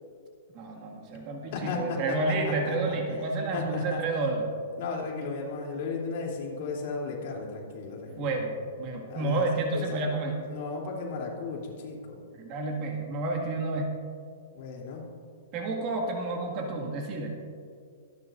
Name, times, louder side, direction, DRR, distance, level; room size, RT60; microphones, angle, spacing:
voice 1, 0.5-4.5 8.2-10.3 12.4-13.9 15.5-17.3, right 2 dB, 35° right, 1 dB, 1.9 m, -30 dB
voice 2, 1.5-2.9 3.5-4.0 4.7-8.4 9.1-10.0 10.5-12.2 14.5-15.0, left 4 dB, 50° left, -2 dB, 3.0 m, -35 dB
23.5 x 10.5 x 2.6 m, 2.3 s
hypercardioid pair, 155°, 0 cm